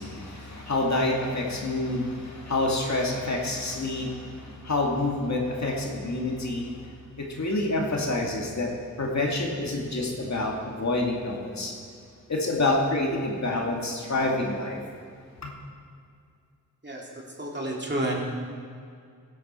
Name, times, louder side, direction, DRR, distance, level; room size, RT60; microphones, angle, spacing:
voice 1, 0.0-8.7 9.0-11.7 12.3-14.8 15.4-15.5, left 2 dB, 55° left, -1 dB, 2.2 m, -28 dB
voice 2, 17.4-18.2, right 1 dB, 35° right, -2 dB, 2.6 m, -29 dB
15.5 x 8.5 x 4.4 m, 2.3 s
cardioid pair, 50°, 32 cm